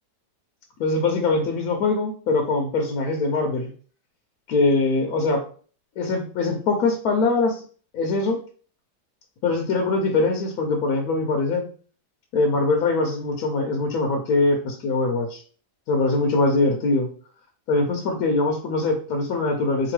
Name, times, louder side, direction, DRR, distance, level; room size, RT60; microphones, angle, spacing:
voice 1, 0.8-3.7 4.5-5.4 6.0-7.6 7.9-8.4 9.4-11.6 12.3-15.4 15.9-17.1 17.7-19.9, left 3 dB, 70° left, 2 dB, 1.1 m, -22 dB
4.0 x 2.9 x 3.1 m, 0.42 s
omnidirectional pair, 1.7 m